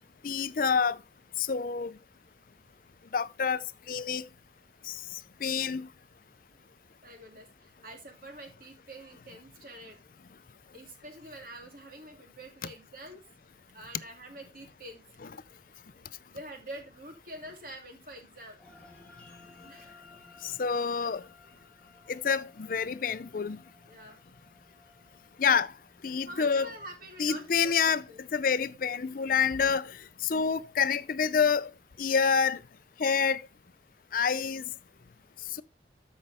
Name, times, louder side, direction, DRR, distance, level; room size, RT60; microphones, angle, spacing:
voice 1, 0.2-1.0 1.4-1.9 3.1-3.6 3.9-4.3 4.9-5.0 5.4-5.9 20.4-21.2 22.1-23.6 25.4-25.7 26.0-26.7 27.2-28.0 28.3-29.9 30.2-31.7 32.0-32.6 33.0-33.4 34.1-34.6, left 6 dB, 50° left, 0.5 m, -27 dB
voice 2, 7.0-10.0 10.7-13.2 13.7-15.0 16.3-18.6 19.6-20.0 23.9-24.2 25.4-25.6 26.3-28.2, right 1 dB, 50° right, 2.7 m, -46 dB
sound 1, 18.6-29.2, left 3 dB, 5° left, 4.9 m, -58 dB
13.5 x 5.4 x 3.5 m
head